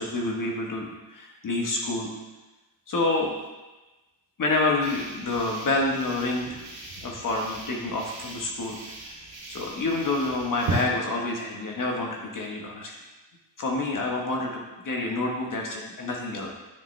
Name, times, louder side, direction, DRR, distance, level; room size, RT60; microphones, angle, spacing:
voice 1, 0.0-2.1 2.9-3.3 4.4-6.6 7.0-8.8 9.5-13.0 13.6-16.5, left 2 dB, 45° left, -1 dB, 1.3 m, -28 dB
sound 1, 4.8-10.8, right 3 dB, 85° right, 2.5 m, -37 dB
9.8 x 6.7 x 3.3 m, 1.1 s
wide cardioid pair, 170°, 44 cm